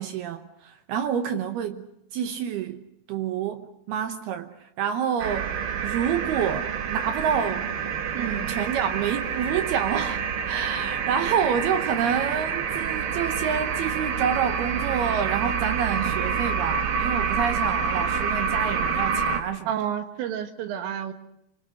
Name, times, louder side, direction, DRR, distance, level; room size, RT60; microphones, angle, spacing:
voice 1, 0.0-1.9 2.1-2.8 3.1-5.5 5.8-7.7 8.2-19.7, right 8 dB, 70° right, 2.5 m, -28 dB
sound 1, 5.2-19.4, right 6 dB, 55° right, 2.7 m, -27 dB
voice 2, 8.1-8.5 19.7-21.1, right 9 dB, 90° right, 4.5 m, -30 dB
25.5 x 25.0 x 6.4 m
omnidirectional pair, 5.6 m